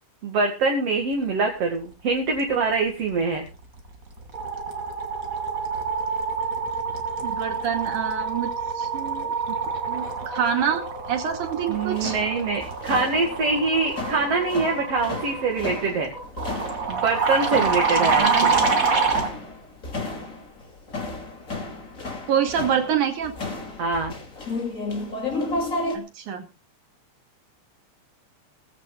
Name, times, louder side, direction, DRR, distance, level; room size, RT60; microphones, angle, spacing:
voice 1, 0.2-3.5 11.7-16.1 16.9-18.6 23.8-24.1, right 4 dB, 55° right, 1 dB, 3.0 m, -24 dB
sound 1, 3.5-3.8 4.1-19.3, right 4 dB, 30° right, 2.5 m, -27 dB
voice 2, 7.2-9.3 9.9-10.8 11.1-12.2 18.0-18.5 22.3-23.3 25.9-26.5, right 8 dB, 80° right, 6 dB, 3.6 m, -26 dB
sound 2, 11.7-26.0, left 2 dB, 25° left, 2.8 m, -33 dB
18.5 x 15.5 x 2.4 m, 0.30 s
omnidirectional pair, 3.5 m